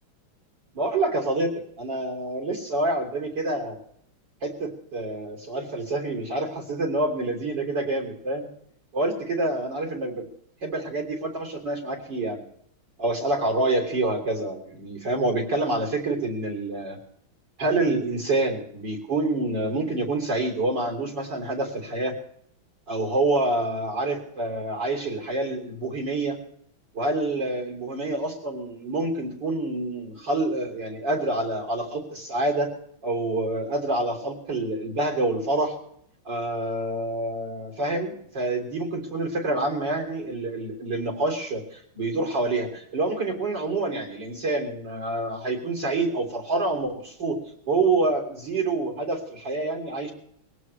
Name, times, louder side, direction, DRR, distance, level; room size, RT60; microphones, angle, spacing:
voice 1, 0.7-3.8 4.4-8.5 8.9-10.3 10.6-12.4 13.0-17.0 17.6-22.2 22.9-26.4 26.9-32.7 33.0-35.8 36.3-50.1, right 2 dB, 55° right, 1 dB, 4.1 m, -27 dB
22.0 x 17.0 x 3.3 m, 0.69 s
omnidirectional pair, 2.3 m